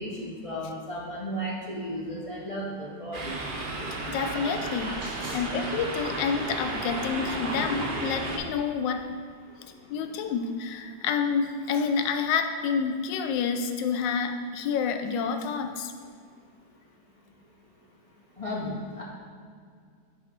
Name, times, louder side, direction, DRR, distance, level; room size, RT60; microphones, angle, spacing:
voice 1, 0.0-3.4 5.0-5.4 18.4-19.0, equal, 55° left, -5 dB, 0.3 m, -34 dB
sound 1, 3.1-8.4, right 2 dB, 75° right, 0.4 m, -33 dB
voice 2, 4.1-9.1 9.9-15.9, left 6 dB, 85° left, 7 dB, 1.3 m, -28 dB
6.0 x 4.3 x 5.1 m, 2.2 s
omnidirectional pair, 1.9 m